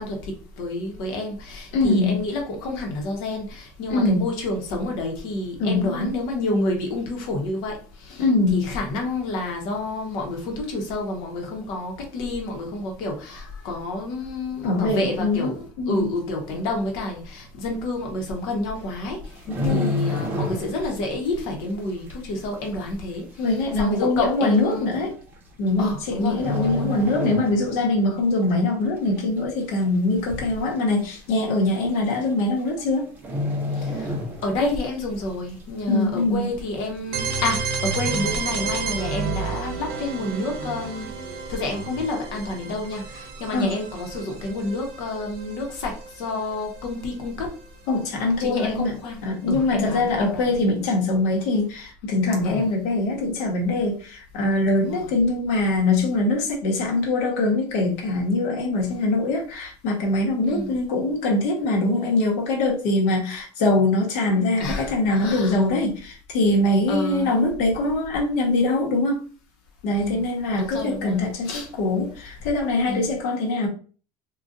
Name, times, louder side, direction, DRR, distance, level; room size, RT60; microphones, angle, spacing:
voice 1, 0.0-8.2 8.5-19.3 19.6-23.5 23.7-24.9 25.8-27.0 33.8-34.1 34.4-41.1 41.5-47.5 48.4-50.6 52.4-52.6 54.8-55.1 60.5-60.7 64.6-65.6 66.9-67.3 69.9-70.2 70.6-71.7 72.9-73.2, left 2 dB, 60° left, 1.0 m, -29 dB
voice 2, 1.7-2.2 3.9-4.2 5.6-6.1 8.2-8.6 14.6-16.1 19.5-20.0 23.4-25.1 25.6-33.1 35.9-36.5 43.5-43.7 47.9-48.9 49.2-69.2 69.8-73.7, left 2 dB, 85° left, 1.1 m, -23 dB
sound 1, 19.2-21.0 21.3-21.5 22.1-22.2 23.1-23.2 23.4-23.5 24.3-24.6 25.7-26.1 26.3-27.9 28.3-28.5 29.0-29.5 29.8-29.9 30.2-30.3 30.7-30.8 31.7-31.8 32.1-32.4 32.7-32.8 33.2-34.8 35.2-35.3, left 2 dB, 20° right, 0.7 m, -28 dB
sound 2, 37.1-46.9, right 5 dB, 65° right, 0.7 m, -31 dB
3.8 x 2.4 x 2.5 m
cardioid pair, 165°, 9 cm